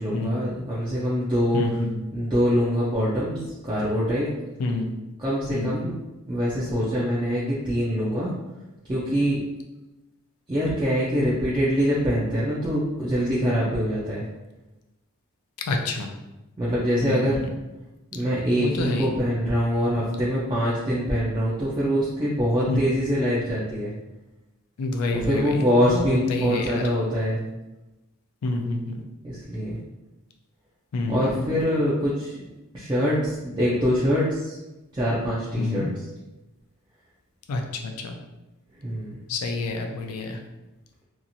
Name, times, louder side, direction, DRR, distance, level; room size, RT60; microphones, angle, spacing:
voice 1, 0.0-1.6 2.1-3.4 3.6-4.3 5.2-5.9 6.3-8.3 8.9-9.4 10.5-14.2 16.6-17.4 18.1-23.9 25.1-27.4 29.2-29.8 31.1-32.5 32.7-34.5 34.9-35.9 38.8-39.2, equal, 20° right, -8 dB, 0.4 m, -24 dB
voice 2, 1.5-1.9 4.6-4.9 5.5-5.8 15.7-16.1 17.0-17.5 18.6-19.1 22.7-22.8 24.8-26.8 28.4-29.0 30.9-31.5 35.6-35.9 37.5-38.2 39.3-40.4, left 2 dB, 85° left, 3 dB, 0.4 m, -28 dB
2.8 x 2.4 x 2.6 m, 1.0 s
head